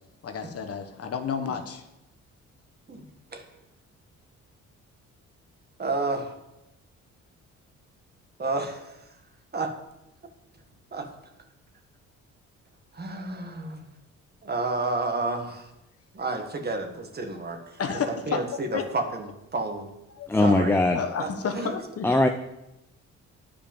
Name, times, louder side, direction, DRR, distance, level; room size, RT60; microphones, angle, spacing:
voice 1, 0.2-1.8 17.8-18.4 18.7-18.9 20.1-20.3 20.9-22.1, left 6 dB, 50° left, 6 dB, 1.2 m, -31 dB
voice 2, 2.9-3.5 5.8-6.4 8.4-9.1 9.5-9.7 10.9-11.1 12.9-13.9 14.4-15.7 16.1-17.8 18.1-19.9 20.4-20.7 21.2-21.7, right 3 dB, 35° right, 4 dB, 1.6 m, -31 dB
voice 3, 20.3-21.0 22.0-22.3, left 2 dB, 5° left, 5 dB, 0.6 m, -20 dB
10.0 x 5.1 x 7.2 m, 0.91 s
cardioid pair, 90°, 30 cm